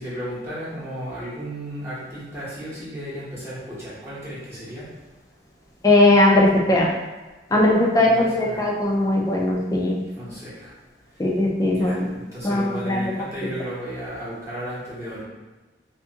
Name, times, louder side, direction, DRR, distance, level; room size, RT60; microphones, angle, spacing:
voice 1, 0.0-4.9 8.0-8.7 10.2-10.7 11.7-15.2, equal, 15° right, -10 dB, 0.9 m, -34 dB
voice 2, 5.8-6.9 7.5-10.0 11.2-12.1 12.4-13.1, left 1 dB, 20° left, -2 dB, 0.4 m, -19 dB
2.6 x 2.3 x 2.8 m, 1.2 s
head